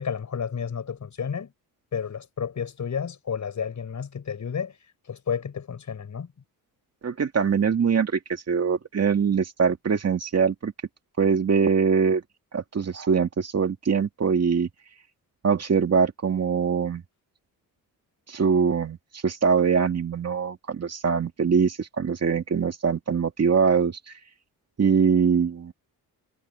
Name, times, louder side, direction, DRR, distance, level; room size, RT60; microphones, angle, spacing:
voice 1, 0.0-1.5 1.9-4.7 5.1-6.3, left 7 dB, 45° left, 6.2 m, -31 dB
voice 2, 7.0-10.7 11.2-12.2 12.5-14.7 15.4-17.0 18.3-19.0 19.2-24.1 24.8-25.7, right 6 dB, 40° right, 2.3 m, -23 dB
cardioid pair, 100°, 38 cm